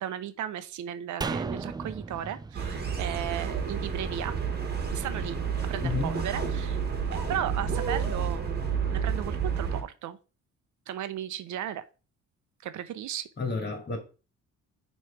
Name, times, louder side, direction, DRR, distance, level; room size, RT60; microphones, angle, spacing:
voice 1, 0.0-4.4 4.9-5.4 5.6-6.8 7.1-10.2 10.9-11.8 12.6-13.3, right 11 dB, 75° right, 0.7 m, -35 dB
sound 1, 1.2-4.5 4.8-4.9, right 4 dB, 15° right, 0.3 m, -37 dB
sound 2, 2.5-9.8, right 6 dB, 35° right, 1.6 m, -30 dB
voice 2, 5.8-6.4 13.4-14.0, left 3 dB, 35° left, 2.3 m, -31 dB
6.3 x 3.2 x 4.6 m
cardioid pair, 90°, 30 cm